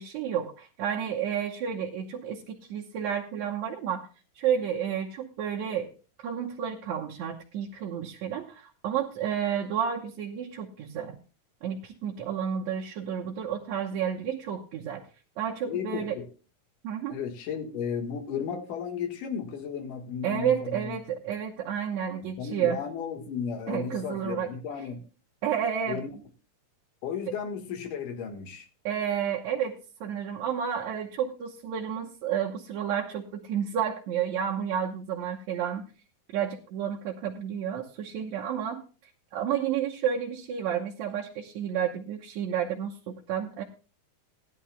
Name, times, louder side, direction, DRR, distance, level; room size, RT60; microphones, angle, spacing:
voice 1, 0.0-4.1 4.4-5.9 6.2-11.2 11.6-15.0 15.4-16.2 16.8-17.2 20.2-22.8 23.7-24.5 25.4-26.0 28.8-35.9 36.3-38.8 39.3-43.6, right 8 dB, 70° right, -2 dB, 2.2 m, -31 dB
voice 2, 15.7-16.3 17.1-21.0 22.4-25.0 25.9-26.1 27.0-28.7, left 7 dB, 80° left, 5 dB, 3.1 m, -34 dB
19.0 x 11.0 x 2.2 m, 0.35 s
omnidirectional pair, 3.7 m